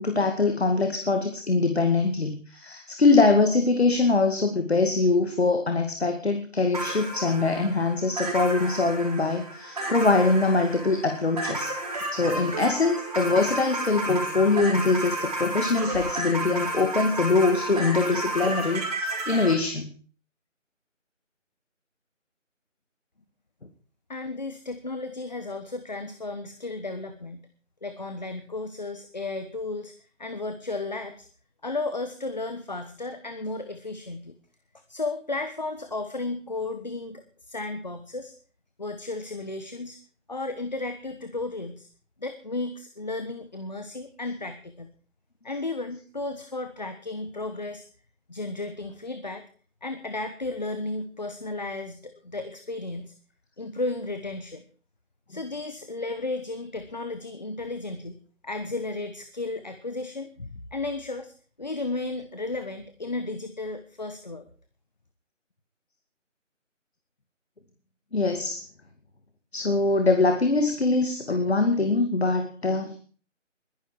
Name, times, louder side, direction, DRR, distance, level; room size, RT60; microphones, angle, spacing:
voice 1, 0.0-11.7 12.1-19.9 68.1-68.6 69.5-73.0, left 3 dB, 55° left, 6 dB, 2.4 m, -23 dB
sound 1, 6.7-19.5, right 2 dB, 30° right, 4.3 m, -32 dB
voice 2, 24.1-27.5 27.8-29.9 30.2-31.3 31.6-34.3 34.9-38.3 38.8-40.0 40.3-41.9 42.2-44.9 45.4-47.8 48.3-49.4 49.8-53.1 53.6-54.6 55.3-61.3 61.6-64.5, left 2 dB, 35° left, 9 dB, 1.2 m, -34 dB
22.0 x 11.5 x 4.6 m, 0.42 s
figure-of-eight pair, 175°, 38 cm